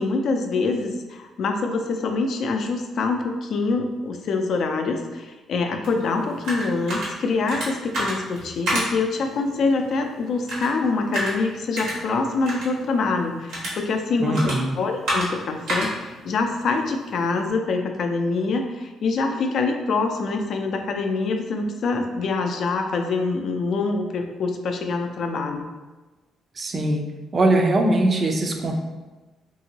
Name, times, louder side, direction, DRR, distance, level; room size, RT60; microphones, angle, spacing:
voice 1, 0.0-25.7, left 3 dB, 65° left, 4 dB, 0.4 m, -25 dB
sound 1, 5.8-17.5, right 1 dB, 85° right, 1.0 m, -32 dB
voice 2, 14.2-14.8 26.6-27.0 27.3-28.7, right 2 dB, 40° right, 3 dB, 0.4 m, -21 dB
2.8 x 2.6 x 2.7 m, 1.2 s
cardioid pair, 90°, 0 cm